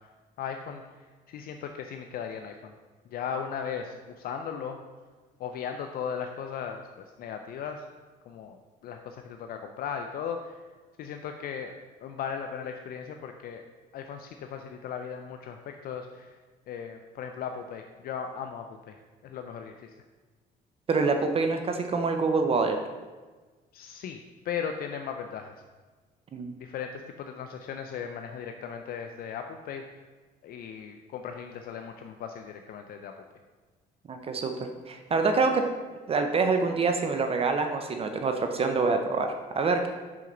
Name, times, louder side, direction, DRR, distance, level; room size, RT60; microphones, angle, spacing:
voice 1, 0.4-0.8 1.3-2.7 3.1-4.8 5.4-6.8 7.2-7.8 8.3-8.6 8.8-10.5 11.0-13.6 13.9-16.4 16.7-18.9 19.2-19.9 23.7-24.2 24.4-25.5 26.6-29.8 30.4-33.1, left 7 dB, 60° left, 5 dB, 0.5 m, -37 dB
voice 2, 20.9-22.8 26.3-26.5 34.1-35.6 36.1-39.9, right 4 dB, 35° right, 6 dB, 0.6 m, -26 dB
6.1 x 5.9 x 3.9 m, 1.3 s
cardioid pair, 110°, 17 cm